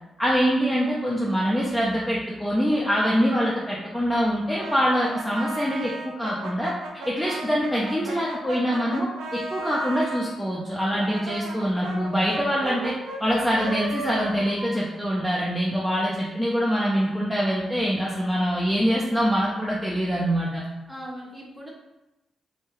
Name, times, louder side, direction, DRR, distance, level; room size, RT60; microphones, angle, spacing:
voice 1, 0.2-6.7 7.1-12.9 13.2-20.6, equal, ahead, -6 dB, 0.6 m, -24 dB
Brass instrument, 4.5-10.3 10.9-15.7, right 2 dB, 80° right, 0.4 m, -36 dB
voice 2, 20.9-21.7, equal, 15° right, -3 dB, 1.0 m, -40 dB
2.6 x 2.3 x 3.1 m, 0.97 s
supercardioid pair, 50°, 0 cm